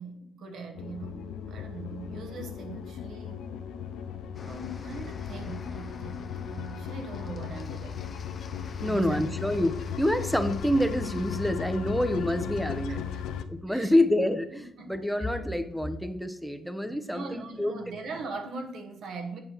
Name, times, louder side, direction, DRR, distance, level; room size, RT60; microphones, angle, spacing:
voice 1, 0.0-3.4 4.4-8.0 8.8-9.2 13.1-13.2 13.7-13.9 14.8-15.0 16.9-19.4, right 3 dB, 70° right, 4 dB, 1.1 m, -40 dB
sound 1, 0.8-13.4, left 8 dB, 90° left, 0.5 m, -37 dB
sound 2, 4.3-11.5, left 5 dB, 40° left, 0.5 m, -46 dB
voice 2, 8.8-13.0 13.5-17.7, left 1 dB, ahead, 9 dB, 0.7 m, -27 dB
8.9 x 6.2 x 3.0 m, 0.79 s
cardioid pair, 90°, 0 cm